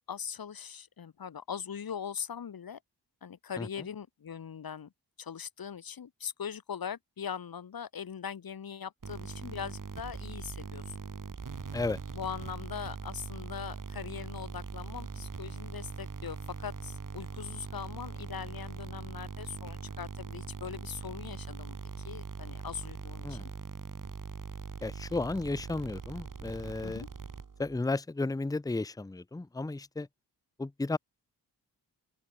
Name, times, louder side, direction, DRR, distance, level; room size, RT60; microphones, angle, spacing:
voice 1, 0.1-2.8 3.2-4.9 5.2-10.9 12.1-21.8 22.0-23.5 26.8-27.1, left 7 dB, 55° left, 1.0 m, -41 dB
sound 1, 9.0-27.8, right 5 dB, 50° right, 2.1 m, -41 dB
voice 2, 24.8-27.0 27.6-30.1 30.6-31.0, left 3 dB, 10° left, 0.6 m, -33 dB
open air
cardioid pair, 60°, 42 cm